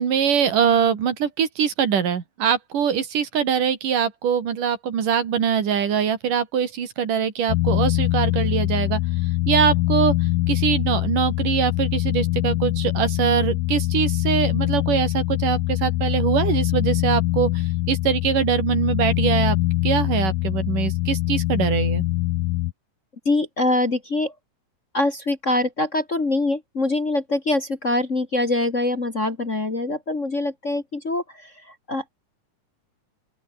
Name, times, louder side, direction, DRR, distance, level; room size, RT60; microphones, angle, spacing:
voice 1, 0.0-9.0 9.5-10.1 10.5-19.6 19.8-22.0, right 8 dB, 85° right, 4.4 m, -23 dB
sound 1, 7.5-22.7, left 18 dB, 90° left, 2.3 m, -23 dB
voice 2, 23.2-24.3 24.9-32.1, left 2 dB, 30° left, 1.8 m, -24 dB
open air
omnidirectional pair, 3.6 m